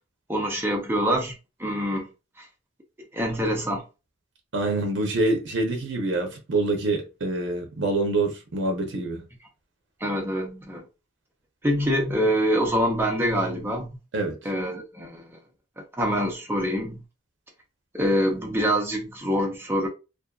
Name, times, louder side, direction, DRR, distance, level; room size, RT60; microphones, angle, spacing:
voice 1, 0.3-1.3 1.6-2.1 2.4-2.5 3.1-3.8 10.0-10.9 11.6-13.9 14.4-15.4 15.8-17.0 17.9-19.9, equal, 10° right, 0.6 m, -25 dB
voice 2, 4.5-9.2 14.1-14.4, right 2 dB, 65° right, 0.6 m, -26 dB
2.5 x 2.4 x 2.3 m
head